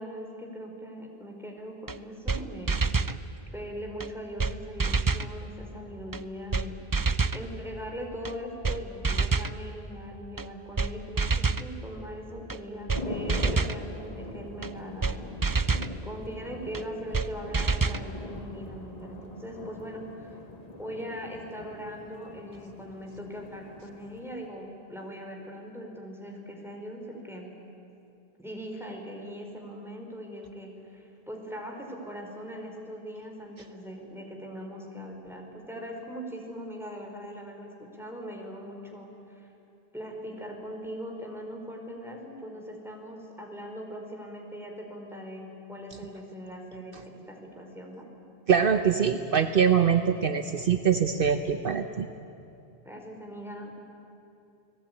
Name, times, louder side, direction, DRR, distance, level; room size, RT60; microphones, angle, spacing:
voice 1, 0.0-2.9 3.5-6.9 7.3-15.4 16.0-20.3 20.8-27.5 28.4-39.5 39.9-48.1 52.8-53.8, equal, ahead, 1 dB, 4.5 m, -40 dB
sound 1, 1.9-2.0 2.3-2.4 2.7-3.2 4.0-4.1 4.4-4.5 4.8-5.3 6.1-6.2 6.5-6.7 6.9-7.4 8.2-8.3 8.6-8.8 9.0-9.5 10.4-10.5 10.8-10.9 11.2-11.7 12.5-12.6 12.9-13.0 13.3-13.8 14.6-14.7 15.0-15.2 15.4-15.9 16.7-16.8 17.1-17.3 17.5-18.0, right 4 dB, 25° right, 0.5 m, -26 dB
sound 2, 12.9-24.5, left 2 dB, 40° left, 1.7 m, -42 dB
voice 2, 48.5-52.1, right 7 dB, 65° right, 8 dB, 1.1 m, -23 dB
30.0 x 19.0 x 9.6 m, 2.8 s
omnidirectional pair, 1.0 m